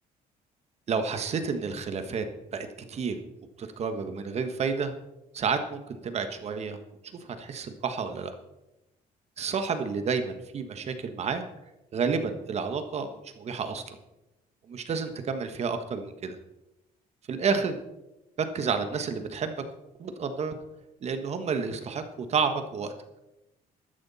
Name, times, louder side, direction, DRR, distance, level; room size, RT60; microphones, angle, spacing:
voice 1, 0.9-2.2 2.5-3.2 3.6-4.9 5.3-6.8 7.2-8.3 9.4-11.4 11.9-14.0 14.7-16.4 17.3-17.8 18.4-19.6 20.0-20.5 21.0-22.9, right 5 dB, 45° right, 8 dB, 1.4 m, -30 dB
13.5 x 13.0 x 4.2 m, 0.93 s
cardioid pair, 125°, 15 cm